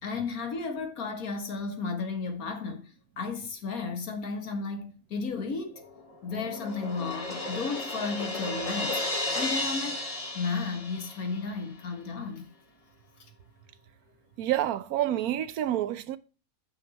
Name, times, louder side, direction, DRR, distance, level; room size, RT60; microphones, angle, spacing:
voice 1, 0.0-5.8 6.2-10.0 10.3-12.5, left 4 dB, 80° left, 2.0 m, -34 dB
Crash cymbal, 5.8-11.5, left 2 dB, 25° left, 1.3 m, -34 dB
voice 2, 14.4-16.2, right 12 dB, 90° right, 1.1 m, -28 dB
9.2 x 6.3 x 2.8 m
omnidirectional pair, 1.5 m